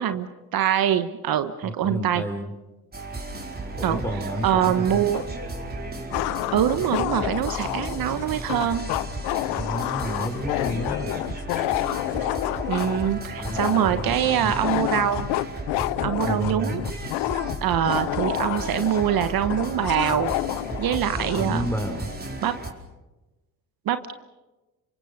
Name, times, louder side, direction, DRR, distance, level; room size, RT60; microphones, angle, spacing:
voice 1, 0.0-2.2 3.8-4.0 4.4-5.2 6.5-8.9 12.7-15.3 16.0-16.8 17.6-20.3 20.8-21.7 22.4-22.6 23.9-24.1, right 10 dB, 60° right, 10 dB, 1.3 m, -24 dB
voice 2, 1.6-2.5 3.7-5.1 9.5-11.2 13.4-14.6 16.2-16.7 21.4-22.1, equal, 5° left, 6 dB, 5.0 m, -31 dB
sound 1, 2.9-22.7, right 2 dB, 25° right, 5.0 m, -34 dB
sound 2, 5.1-5.2 6.1-21.5, left 18 dB, 85° left, 0.7 m, -29 dB
27.5 x 24.5 x 6.7 m, 1.1 s
supercardioid pair, 80°, 40 cm